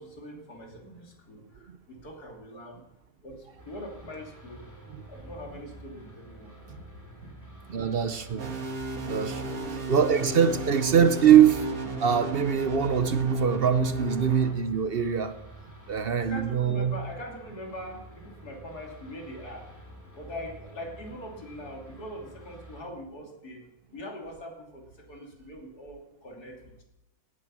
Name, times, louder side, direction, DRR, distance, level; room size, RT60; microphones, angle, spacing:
voice 1, 0.0-2.8 3.2-4.7 5.1-7.3 9.5-9.9 16.2-19.7 20.2-26.8, left 1 dB, 85° left, 0 dB, 3.4 m, -42 dB
sound 1, 3.6-22.8, right 2 dB, 10° left, 3.1 m, -49 dB
voice 2, 7.7-8.5 9.1-9.6 9.9-11.7 12.0-15.3 15.9-16.9, right 8 dB, 50° right, 11 dB, 0.8 m, -23 dB
sound 2, 8.4-14.5, right 2 dB, 65° right, 2.2 m, -34 dB
17.5 x 9.4 x 6.1 m, 0.92 s
omnidirectional pair, 1.6 m